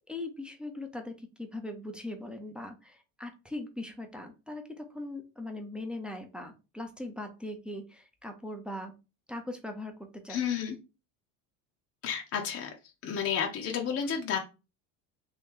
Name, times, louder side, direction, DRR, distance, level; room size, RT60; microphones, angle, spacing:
voice 1, 0.0-8.9 9.3-10.4, left 1 dB, 5° right, 3 dB, 0.5 m, -40 dB
voice 2, 10.3-10.8 12.0-12.7 13.0-14.4, left 7 dB, 40° left, 2 dB, 0.7 m, -31 dB
3.0 x 2.7 x 3.6 m, 0.30 s
supercardioid pair, 100°, 39 cm